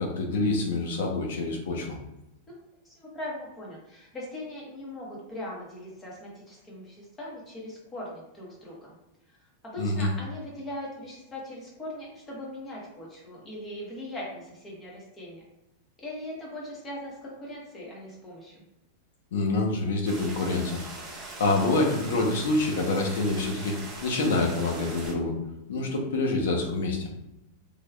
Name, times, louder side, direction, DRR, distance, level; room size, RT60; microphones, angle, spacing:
voice 1, 0.0-2.0 9.8-10.1 19.3-20.8 21.4-25.3 25.7-27.1, left 2 dB, 75° left, 1 dB, 0.8 m, -26 dB
voice 2, 2.8-8.9 9.7-15.4 16.0-18.5, left 1 dB, 20° left, -4 dB, 1.2 m, -40 dB
sound 1, 20.0-25.1, right 3 dB, 25° right, 1.1 m, -41 dB
3.4 x 3.1 x 2.3 m, 0.91 s
supercardioid pair, 150°, 0 cm